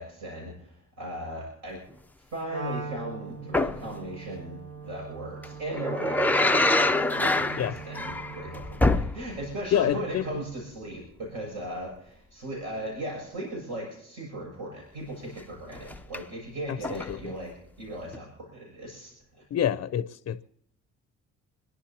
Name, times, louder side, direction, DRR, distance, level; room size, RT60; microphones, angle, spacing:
voice 1, 0.0-1.8 2.2-19.4, right 1 dB, 60° right, 6.7 m, -37 dB
Wind instrument woodwind instrument, 2.5-8.9, right 5 dB, 40° right, 1.9 m, -42 dB
sound 1, 3.5-3.9 5.4-9.6 9.9-10.0 15.8-16.2 16.8-17.3 18.1-18.2, left 2 dB, 5° left, 0.5 m, -25 dB
voice 2, 9.7-10.3 16.7-17.2 19.5-20.4, left 10 dB, 50° left, 0.6 m, -27 dB
28.0 x 11.0 x 2.9 m
cardioid pair, 90°, 30 cm